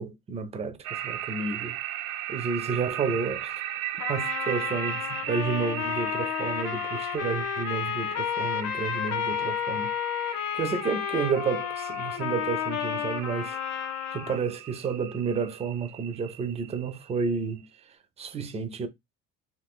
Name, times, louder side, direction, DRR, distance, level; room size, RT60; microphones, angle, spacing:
voice 1, 0.0-1.8 2.3-3.6 4.1-9.9 10.2-17.7 18.2-18.9, right 5 dB, 20° right, 0.4 m, -31 dB
sound 1, 0.8-17.6, right 12 dB, 85° right, 0.5 m, -38 dB
Trumpet, 4.0-14.4, left 10 dB, 75° left, 0.6 m, -31 dB
2.6 x 2.5 x 3.4 m
cardioid pair, 135°, 32 cm